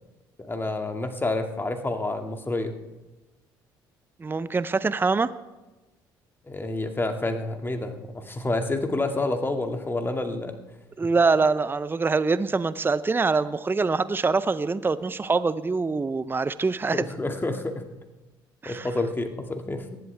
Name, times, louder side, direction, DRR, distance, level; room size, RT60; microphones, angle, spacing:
voice 1, 0.5-2.7 6.5-10.6 16.9-17.9 18.7-20.0, left 2 dB, 20° left, 5 dB, 2.2 m, -29 dB
voice 2, 4.2-5.3 11.0-17.1 18.6-18.9, right 4 dB, 20° right, 15 dB, 0.6 m, -24 dB
24.5 x 11.5 x 3.5 m, 1.1 s
hypercardioid pair, 50°, 11 cm